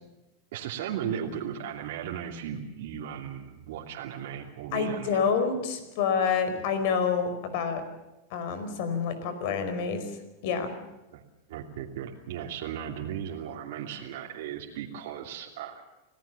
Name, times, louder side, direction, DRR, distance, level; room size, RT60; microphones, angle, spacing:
voice 1, 0.5-5.2 11.1-11.2 11.5-15.8, right 9 dB, 70° right, -2 dB, 2.8 m, -36 dB
voice 2, 4.7-7.8 8.3-10.0 10.4-10.7, left 6 dB, 55° left, 10 dB, 4.8 m, -28 dB
27.0 x 17.5 x 7.1 m, 1.0 s
supercardioid pair, 145°, 0 cm